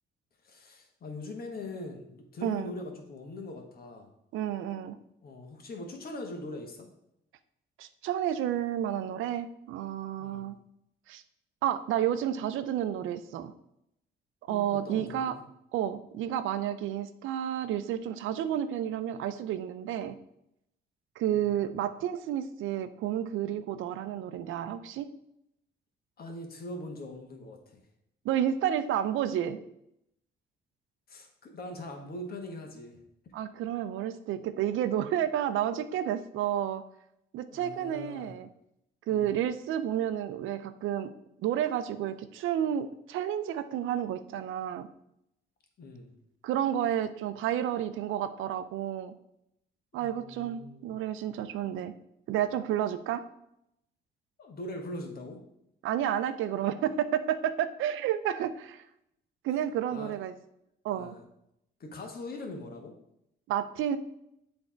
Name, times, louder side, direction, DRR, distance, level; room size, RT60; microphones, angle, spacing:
voice 1, 0.4-4.1 5.2-6.9 10.2-10.5 14.5-15.4 21.3-21.5 26.2-27.6 31.1-33.0 37.5-38.3 39.1-39.4 45.8-46.1 49.9-50.9 54.4-55.4 59.5-59.6 59.9-60.1 60.9-61.2 61.8-62.9, left 2 dB, 50° left, 3 dB, 1.4 m, -42 dB
voice 2, 2.4-2.7 4.3-5.0 7.8-10.5 11.1-11.2 11.6-13.5 14.5-15.4 15.7-20.2 21.2-25.1 28.2-29.6 33.3-36.8 37.3-38.5 39.1-41.1 41.4-44.9 46.4-49.1 49.9-51.9 52.3-53.2 55.8-58.8 59.4-60.3 60.8-61.1 63.5-64.0, right 10 dB, 85° right, 12 dB, 0.5 m, -31 dB
8.0 x 3.4 x 4.4 m, 0.80 s
cardioid pair, 90°, 20 cm